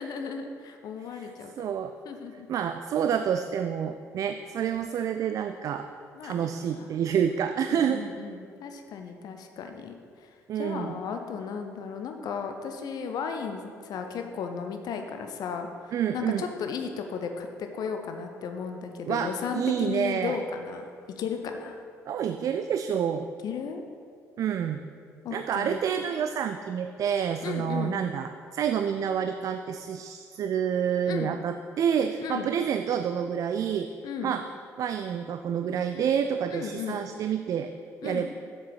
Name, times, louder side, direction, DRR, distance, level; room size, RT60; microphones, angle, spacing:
voice 1, 0.0-1.7 2.0-2.5 6.2-6.9 7.6-9.9 10.2-10.3 10.6-20.9 21.2-21.8 23.4-23.8 25.2-25.8 27.4-28.0 31.1-31.3 32.2-32.5 34.0-34.3 36.5-37.0 38.0-38.3, left 6 dB, 50° left, 5 dB, 0.7 m, -35 dB
voice 2, 1.6-1.9 2.5-5.9 6.2-8.0 10.5-10.9 15.9-16.5 19.0-20.4 22.1-23.3 24.4-24.8 25.3-33.9 34.2-34.4 34.8-37.7 38.0-38.3, right 8 dB, 40° right, 8 dB, 0.3 m, -28 dB
7.4 x 7.3 x 4.1 m, 2.3 s
figure-of-eight pair, 50°, 8 cm